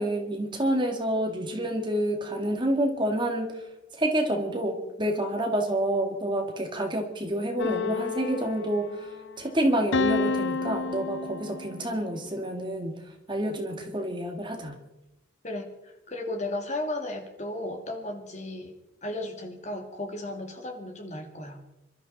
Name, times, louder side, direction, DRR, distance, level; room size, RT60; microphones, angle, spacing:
voice 1, 0.0-3.6 4.0-9.1 9.4-12.9 13.3-14.8, right 1 dB, 25° right, 3 dB, 1.9 m, -28 dB
sound 1, 7.6-9.2 9.9-11.9, left 4 dB, 65° left, 0.7 m, -30 dB
voice 2, 15.4-18.7 19.0-21.6, left 1 dB, 35° left, 4 dB, 2.2 m, -35 dB
26.0 x 12.5 x 4.1 m, 0.93 s
head